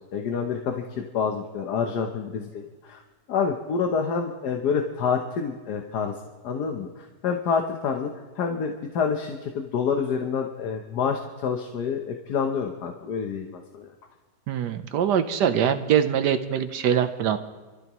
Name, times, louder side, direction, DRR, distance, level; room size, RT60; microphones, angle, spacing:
voice 1, 0.1-3.0 3.3-6.2 6.4-8.1 8.4-13.9, left 6 dB, 70° left, 3 dB, 1.5 m, -27 dB
voice 2, 14.5-17.4, right 8 dB, 80° right, 9 dB, 1.4 m, -23 dB
30.0 x 13.5 x 3.0 m, 1.2 s
omnidirectional pair, 1.8 m